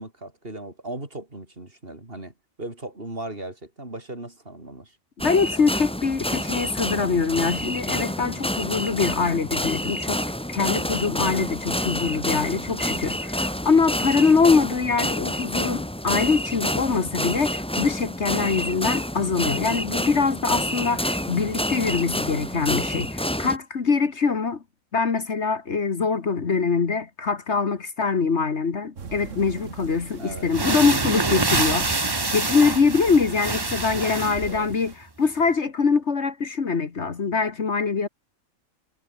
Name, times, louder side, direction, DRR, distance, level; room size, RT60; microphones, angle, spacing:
voice 1, 0.0-5.0 30.2-30.5 33.7-34.7, right 2 dB, 40° right, 4.8 m, -38 dB
voice 2, 5.2-10.2 10.5-24.6 24.9-38.1, left 5 dB, 55° left, 1.8 m, -23 dB
sound 1, 5.2-23.6, equal, 5° left, 1.7 m, -28 dB
sound 2, 29.0-34.9, right 5 dB, 65° right, 2.0 m, -39 dB
sound 3, 29.8-29.9 30.4-34.6, right 3 dB, 20° right, 1.1 m, -26 dB
omnidirectional pair, 1.4 m